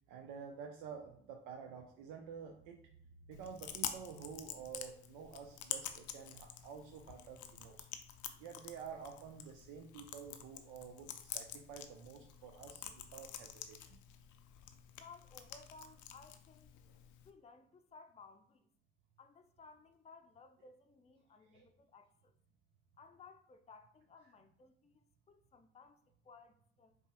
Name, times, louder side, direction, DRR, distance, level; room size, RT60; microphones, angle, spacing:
voice 1, 0.1-3.0 3.2-7.9 8.4-14.0 21.5-21.7, right 6 dB, 85° right, 0.5 m, -50 dB
Chewing mastication, 3.3-17.3, left 10 dB, 80° left, 0.5 m, -48 dB
voice 2, 15.0-16.8 17.2-18.7 19.2-22.3 23.0-27.0, left 4 dB, 20° left, 0.5 m, -59 dB
5.3 x 2.3 x 2.9 m
hypercardioid pair, 50°, 29 cm